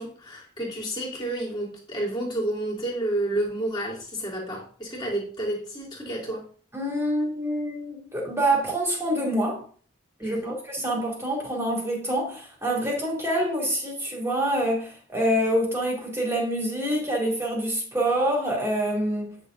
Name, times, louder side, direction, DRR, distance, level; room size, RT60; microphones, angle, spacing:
voice 1, 0.0-6.5 10.2-10.6, right 1 dB, 25° left, 3.0 m, -30 dB
voice 2, 6.7-9.6 10.2-19.4, right 1 dB, 15° right, 2.7 m, -26 dB
9.8 x 6.6 x 2.6 m
head